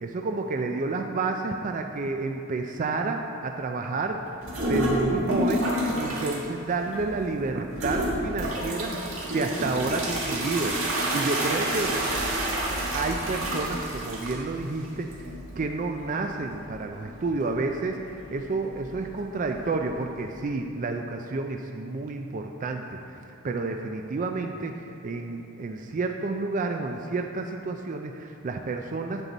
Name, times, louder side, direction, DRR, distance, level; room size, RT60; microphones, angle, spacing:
voice 1, 0.0-4.2 4.5-12.0 12.9-15.1 15.6-18.0 18.3-29.2, right 3 dB, 40° right, 4 dB, 0.4 m, -30 dB
sound 1, 4.4-6.4 6.8-7.3 7.7-20.4, right 1 dB, 85° right, 1.8 m, -30 dB
9.0 x 7.6 x 4.0 m, 2.6 s
head